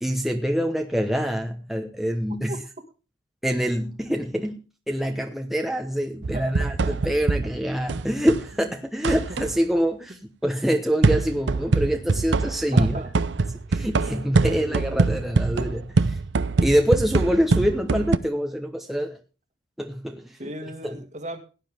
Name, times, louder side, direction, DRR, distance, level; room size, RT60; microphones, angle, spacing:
voice 1, 0.0-2.5 3.4-4.5 4.9-10.1 10.4-13.0 13.7-16.2 16.6-19.2 19.8-20.2, equal, ahead, 1.0 m, -25 dB
sound 1, 6.2-8.5 9.0-9.6 11.0-18.2, right 3 dB, 70° right, 0.6 m, -24 dB
voice 2, 6.3-7.1 12.7-13.1 13.9-15.1 20.4-21.4, right 1 dB, 40° right, 1.8 m, -37 dB
17.0 x 10.0 x 3.5 m
head